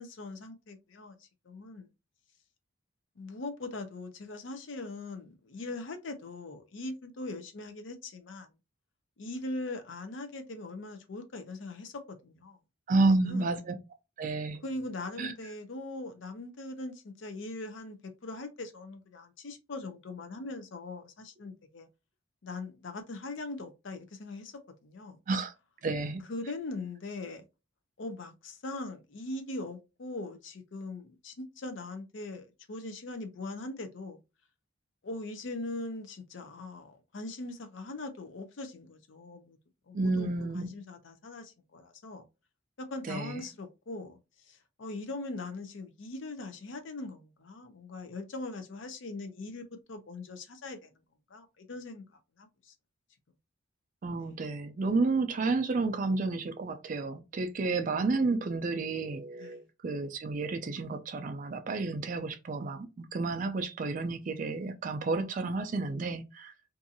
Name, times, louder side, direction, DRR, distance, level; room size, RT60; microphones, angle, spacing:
voice 1, 0.0-1.9 3.2-8.5 9.2-12.6 13.1-13.5 14.6-21.9 22.4-25.2 26.3-27.4 28.0-34.2 35.0-39.6 39.9-42.2 42.8-44.2 44.5-50.9 51.3-52.0 52.4-52.7 58.0-58.4 59.4-59.6, left 2 dB, 60° left, 0.5 m, -41 dB
voice 2, 12.9-13.7 14.2-14.6 15.2-15.3 25.3-25.5 25.8-26.2 39.9-40.7 43.1-43.4 54.0-66.5, right 3 dB, 40° right, 0.3 m, -31 dB
2.6 x 2.4 x 2.6 m
head